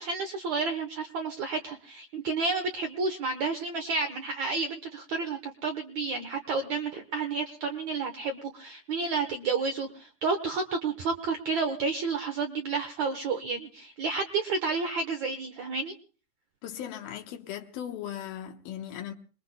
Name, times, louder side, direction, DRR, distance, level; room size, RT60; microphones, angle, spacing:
voice 1, 0.0-16.0, right 4 dB, 70° right, 1.7 m, -31 dB
voice 2, 16.6-19.1, left 10 dB, 75° left, 2.7 m, -38 dB
27.5 x 21.5 x 2.2 m
omnidirectional pair, 4.7 m